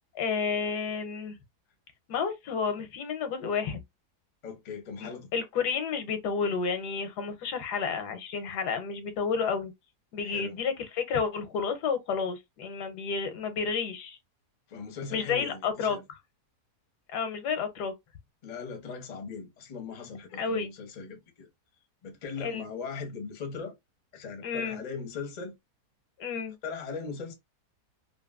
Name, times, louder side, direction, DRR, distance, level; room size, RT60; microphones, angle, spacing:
voice 1, 0.1-1.4 2.1-3.8 5.0-9.7 10.1-14.2 15.1-16.0 17.1-17.9 20.4-20.7 22.4-22.7 24.4-24.8 26.2-26.6, left 5 dB, 90° left, 1.3 m, -31 dB
voice 2, 4.4-5.3 10.2-10.6 14.7-16.0 18.4-21.5 22.0-23.7 24.1-25.6 26.6-27.3, left 5 dB, 45° left, 0.5 m, -39 dB
2.9 x 2.5 x 2.3 m
omnidirectional pair, 1.7 m